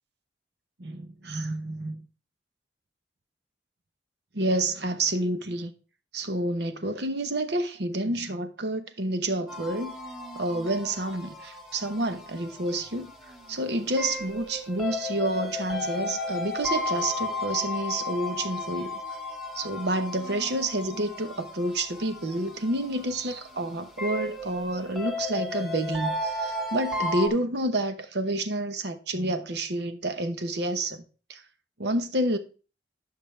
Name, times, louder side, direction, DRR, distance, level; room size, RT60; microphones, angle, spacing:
voice 1, 0.8-2.0 4.3-5.7 6.1-10.0 10.3-13.1 13.5-19.0 19.5-31.0 31.3-31.4 31.8-32.4, right 1 dB, 65° right, 1.0 m, -29 dB
sound 1, 9.5-27.3, left 2 dB, ahead, 1.4 m, -34 dB
10.5 x 5.9 x 3.3 m
head